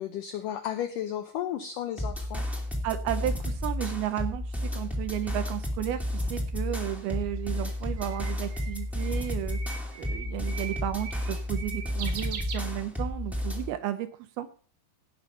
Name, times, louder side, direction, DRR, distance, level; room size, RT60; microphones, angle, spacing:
voice 1, 0.0-2.5, left 10 dB, 85° left, 7 dB, 1.8 m, -33 dB
sound 1, 2.0-13.7, left 1 dB, ahead, 0.7 m, -32 dB
voice 2, 2.8-9.6 10.0-14.5, right 13 dB, 75° right, 10 dB, 2.4 m, -33 dB
Bird, 7.0-13.3, right 6 dB, 60° right, 1.9 m, -42 dB
17.5 x 5.9 x 5.4 m, 0.42 s
omnidirectional pair, 4.9 m